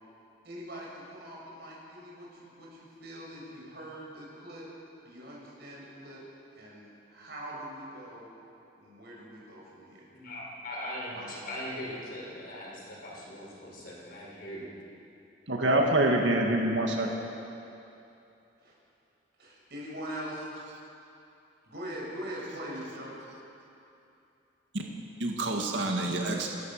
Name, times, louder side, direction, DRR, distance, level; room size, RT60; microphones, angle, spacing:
voice 1, 0.4-4.7 5.0-6.2 6.5-8.3 8.8-10.1 11.1-11.3 18.6-18.7 19.4-20.5 21.6-23.2, equal, 60° right, -4 dB, 6.5 m, -42 dB
voice 2, 10.1-14.7, left 1 dB, 50° left, -4 dB, 5.8 m, -40 dB
voice 3, 15.5-17.1 24.7-24.8 25.2-26.5, right 1 dB, 75° right, 1 dB, 2.1 m, -26 dB
29.0 x 13.5 x 6.7 m, 2.8 s
head